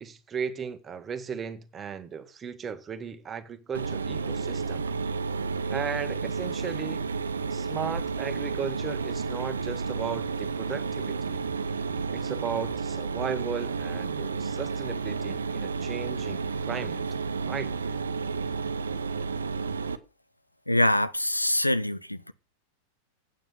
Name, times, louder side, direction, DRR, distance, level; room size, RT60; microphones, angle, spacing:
voice 1, 0.0-4.8 5.7-7.0 7.5-11.5 12.1-17.0 17.5-17.7, right 6 dB, 20° right, 1.3 m, -36 dB
Mechanisms, 3.7-20.0, right 4 dB, 70° right, 0.9 m, -31 dB
voice 2, 20.7-22.3, left 1 dB, 85° left, 0.7 m, -24 dB
9.1 x 7.8 x 6.7 m
figure-of-eight pair, 90°, 0 cm